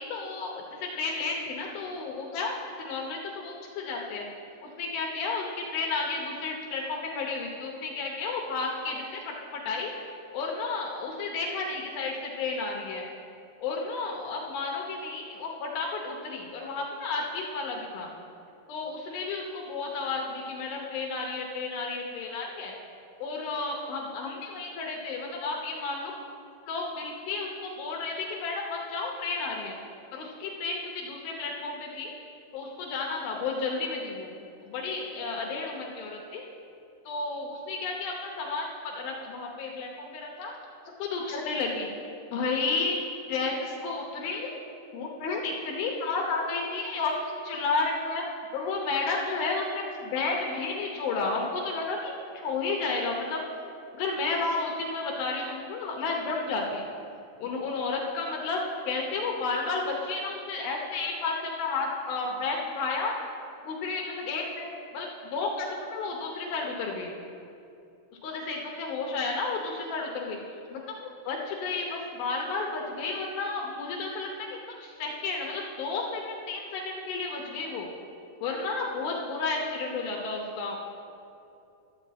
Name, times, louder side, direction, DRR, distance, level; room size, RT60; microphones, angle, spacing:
voice 1, 0.0-4.3 4.6-9.9 10.3-13.1 13.6-18.1 18.7-22.7 23.2-26.1 26.7-29.8 30.1-32.1 32.5-36.5 37.1-40.5 41.0-41.9 42.3-43.0 43.3-44.5 44.9-48.2 48.5-53.4 54.0-56.8 57.4-63.1 63.7-65.7 65.9-67.1 68.2-70.4 70.7-77.9 78.4-80.8, left 3 dB, 75° left, 0 dB, 2.6 m, -32 dB
12.0 x 4.5 x 7.9 m, 2.7 s
omnidirectional pair, 4.6 m